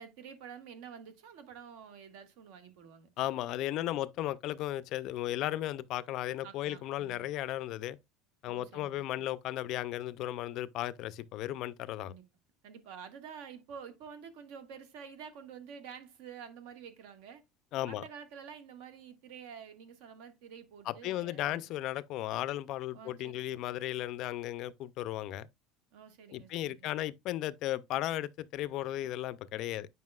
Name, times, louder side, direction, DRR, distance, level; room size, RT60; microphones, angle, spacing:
voice 1, 0.0-3.1 6.4-7.2 8.5-9.0 12.0-12.2 12.6-17.4 17.9-21.7 22.9-23.6 25.9-26.9, right 7 dB, 70° right, 1.5 m, -49 dB
voice 2, 3.2-8.0 8.4-12.1 17.7-18.0 20.9-25.5 26.3-29.9, left 14 dB, 45° left, 0.4 m, -35 dB
9.4 x 5.4 x 2.3 m
cardioid pair, 165°, 0 cm